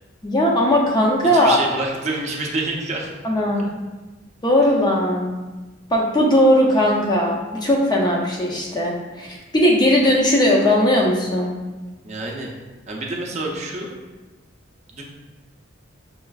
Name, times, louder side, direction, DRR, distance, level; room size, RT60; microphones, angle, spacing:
voice 1, 0.2-1.6 3.2-3.7 4.4-5.4 5.9-11.5, left 1 dB, 20° left, -2 dB, 0.5 m, -18 dB
voice 2, 1.3-3.1 3.6-3.7 12.0-12.5 12.9-13.9 14.9-15.0, right 2 dB, 35° right, -1 dB, 0.5 m, -27 dB
5.4 x 2.4 x 2.3 m, 1.2 s
head